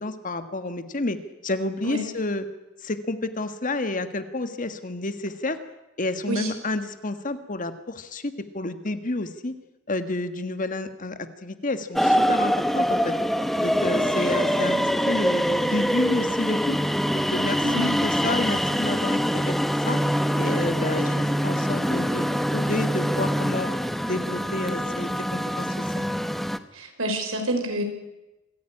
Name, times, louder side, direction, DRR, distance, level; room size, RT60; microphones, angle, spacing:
voice 1, 0.0-2.4 2.8-5.6 6.0-9.6 9.9-13.1 13.6-16.8 17.1-20.0 20.3-22.2 22.5-23.7 24.0-26.0, left 2 dB, 40° left, 10 dB, 1.5 m, -30 dB
sound 1, 12.0-26.6, equal, ahead, 0.9 m, -24 dB
voice 2, 26.7-27.8, equal, 70° right, 5 dB, 5.2 m, -28 dB
27.0 x 15.0 x 9.8 m, 1.0 s
head